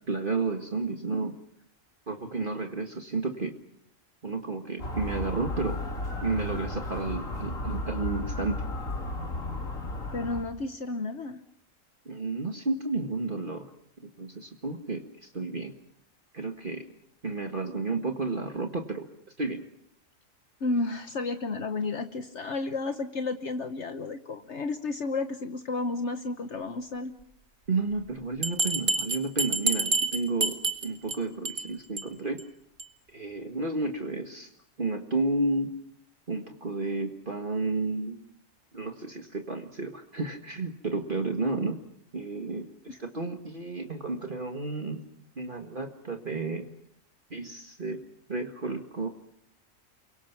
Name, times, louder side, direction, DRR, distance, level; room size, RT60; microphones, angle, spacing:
voice 1, 0.1-1.4 2.1-3.6 4.2-5.8 6.2-8.6 12.1-13.7 14.0-15.7 16.3-16.9 17.2-19.1 19.4-19.6 27.7-32.4 33.1-34.5 34.8-35.7 36.3-38.2 38.7-41.8 42.1-45.0 45.4-46.7 47.3-48.0 48.3-49.1, right 3 dB, 40° right, 4 dB, 1.9 m, -32 dB
Motor vehicle (road) / Siren, 4.8-10.4, left 1 dB, 80° left, 3.4 m, -34 dB
voice 2, 10.1-11.4 20.6-27.1 42.9-43.0, left 3 dB, 60° left, 8 dB, 1.4 m, -32 dB
Bell, 28.4-31.2 31.5-31.7 32.0-32.1 32.4-32.5 32.8-32.9, right 3 dB, 85° right, 2.3 m, -27 dB
29.5 x 23.5 x 6.0 m, 0.73 s
omnidirectional pair, 1.4 m